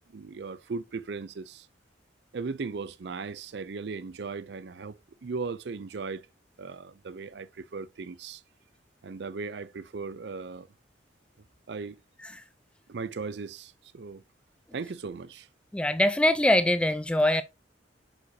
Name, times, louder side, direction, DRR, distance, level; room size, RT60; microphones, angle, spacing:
voice 1, 0.1-1.7 2.3-6.3 6.6-8.4 9.0-10.7 11.7-12.0 12.9-14.2 14.7-15.5, right 4 dB, 60° right, 0.5 m, -37 dB
voice 2, 15.7-17.4, left 1 dB, 5° left, 0.3 m, -23 dB
8.2 x 4.9 x 2.7 m
head